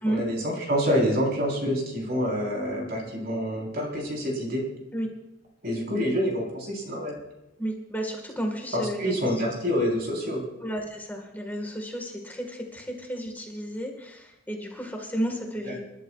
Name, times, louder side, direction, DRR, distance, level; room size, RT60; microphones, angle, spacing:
voice 1, 0.1-4.6 5.6-7.2 8.7-10.4 15.6-15.7, equal, 55° right, 0 dB, 4.0 m, -27 dB
voice 2, 7.6-9.4 10.6-15.8, right 1 dB, 10° left, 2 dB, 1.6 m, -32 dB
27.5 x 11.5 x 2.4 m, 0.93 s
head